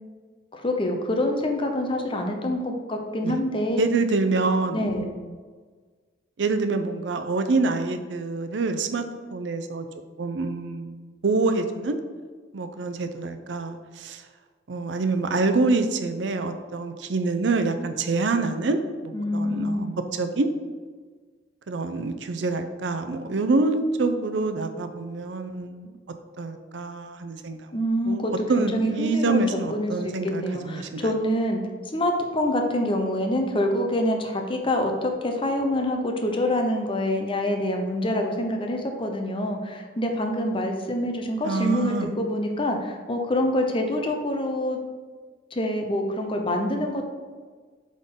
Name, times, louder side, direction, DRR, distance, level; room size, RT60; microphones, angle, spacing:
voice 1, 0.5-3.8 4.7-5.1 19.1-19.9 27.7-31.6 31.9-44.8 45.5-47.1, left 1 dB, 30° left, 3 dB, 0.7 m, -26 dB
voice 2, 3.8-4.9 6.4-9.0 9.3-9.9 10.2-11.0 11.2-12.0 12.5-14.2 14.7-19.9 20.1-20.5 21.7-26.0 26.4-27.6 28.1-28.2 28.5-31.1 41.4-42.1, right 3 dB, 75° right, 8 dB, 0.5 m, -26 dB
7.9 x 3.7 x 3.7 m, 1.5 s
head